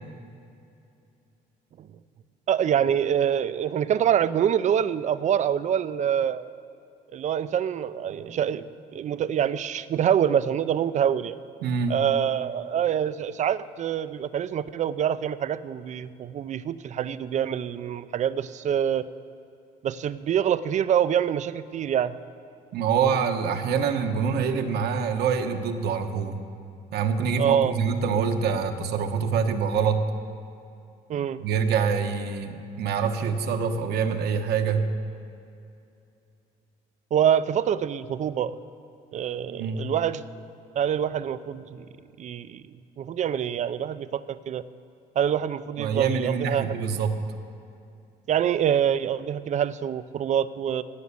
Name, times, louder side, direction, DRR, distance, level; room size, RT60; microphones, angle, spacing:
voice 1, 2.5-6.5 7.1-11.4 11.9-19.1 19.8-22.1 27.4-27.7 31.1-31.4 37.1-38.6 39.1-40.2 40.8-41.9 42.2-42.6 43.0-44.6 45.2-46.8 48.3-50.8, right 9 dB, 45° right, 15 dB, 0.5 m, -25 dB
voice 2, 11.6-12.0 22.7-26.4 26.9-30.0 31.4-34.8 39.5-39.8 45.8-47.1, right 6 dB, 70° right, 6 dB, 1.1 m, -25 dB
17.0 x 6.3 x 8.4 m, 2.6 s
cardioid pair, 110°, 17 cm